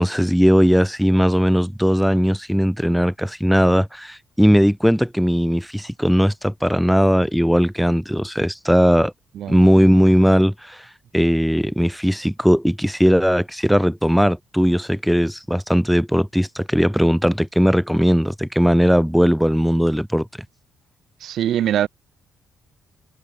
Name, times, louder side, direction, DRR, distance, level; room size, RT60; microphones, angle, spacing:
voice 1, 0.0-9.1 9.5-10.9 11.1-20.3, equal, ahead, 1.6 m, -18 dB
voice 2, 21.2-21.9, right 11 dB, 70° right, 4.1 m, -22 dB
cardioid pair, 90°, 0 cm